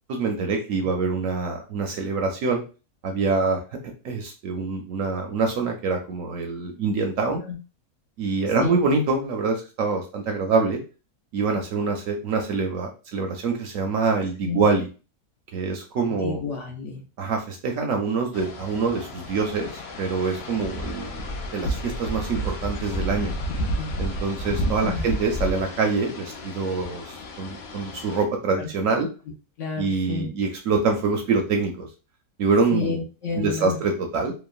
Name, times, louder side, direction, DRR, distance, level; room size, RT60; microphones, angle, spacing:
voice 1, 0.1-2.6 3.0-3.6 4.0-7.4 8.2-10.8 11.3-14.9 15.5-16.4 17.2-23.3 24.0-29.1 29.8-31.9 32.4-33.0 33.4-34.3, right 4 dB, 70° right, 3 dB, 0.8 m, -25 dB
voice 2, 16.1-17.0 23.8-24.0 24.8-25.1 28.5-28.7 29.6-30.3 32.7-33.8, left 5 dB, 65° left, 0 dB, 0.9 m, -30 dB
sound 1, 18.3-28.2, equal, 85° left, 0.5 m, -31 dB
3.0 x 2.1 x 2.4 m, 0.33 s
omnidirectional pair, 1.6 m